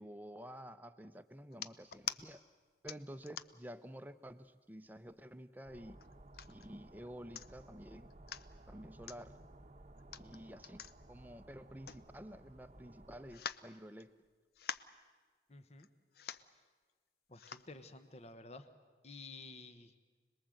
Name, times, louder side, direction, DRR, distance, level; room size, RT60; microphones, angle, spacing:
voice 1, 0.0-2.4 2.8-6.0 6.5-8.1 8.7-9.3 10.2-14.1, equal, 10° right, 9 dB, 0.7 m, -51 dB
sound 1, 1.5-2.2 2.9-3.7 4.3-4.4 4.7-5.4 6.0-6.7 7.1-7.2 7.3-7.7 8.1-8.5 9.0-9.2 10.0-12.5 12.8-12.9 13.3-14.3 14.5-15.0 15.8-15.9 16.1-16.5 17.3-17.7 18.3-18.4, left 8 dB, 60° left, 0.6 m, -46 dB
sound 2, 5.7-13.4, right 1 dB, 40° right, 0.9 m, -57 dB
voice 2, 15.5-15.9 17.3-18.7 19.0-19.9, left 3 dB, 35° left, 10 dB, 1.1 m, -52 dB
26.5 x 20.5 x 7.8 m, 1.4 s
head